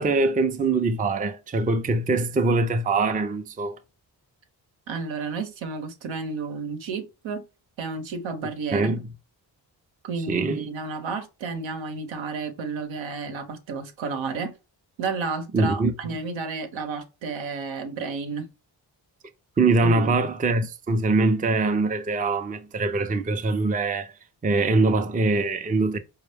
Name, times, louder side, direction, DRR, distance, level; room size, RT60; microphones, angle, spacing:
voice 1, 0.0-3.8 8.7-9.0 10.3-10.6 15.5-15.9 19.6-24.1 24.4-26.0, right 3 dB, 20° right, 0.5 m, -23 dB
voice 2, 4.9-7.5 7.8-9.0 10.0-14.5 15.0-18.5 19.8-20.1, right 4 dB, 70° right, 0.9 m, -31 dB
4.4 x 2.2 x 3.3 m
cardioid pair, 55°, 47 cm